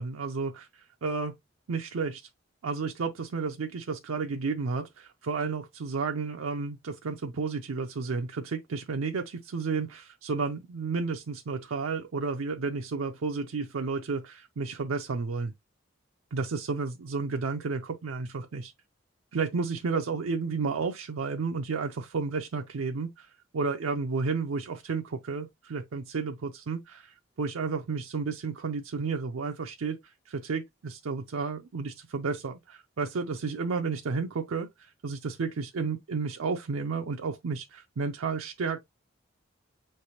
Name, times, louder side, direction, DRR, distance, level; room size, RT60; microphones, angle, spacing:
voice 1, 0.0-1.3 1.7-2.3 2.6-15.5 16.3-18.7 19.3-38.8, right 4 dB, 90° right, 0.5 m, -32 dB
5.5 x 3.3 x 2.7 m
head